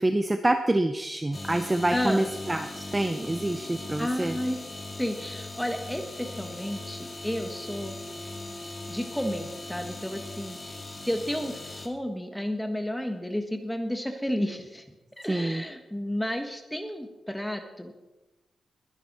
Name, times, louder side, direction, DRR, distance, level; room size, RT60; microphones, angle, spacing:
voice 1, 0.0-4.4 15.3-15.6, right 1 dB, 15° right, 8 dB, 0.6 m, -26 dB
sound 1, 1.3-11.9, left 2 dB, 20° left, 1.8 m, -39 dB
voice 2, 1.9-2.3 4.0-4.6 5.0-8.0 8.9-17.9, equal, 5° left, 5 dB, 1.5 m, -32 dB
20.5 x 11.0 x 4.2 m, 1.0 s
wide cardioid pair, 140°, 0 cm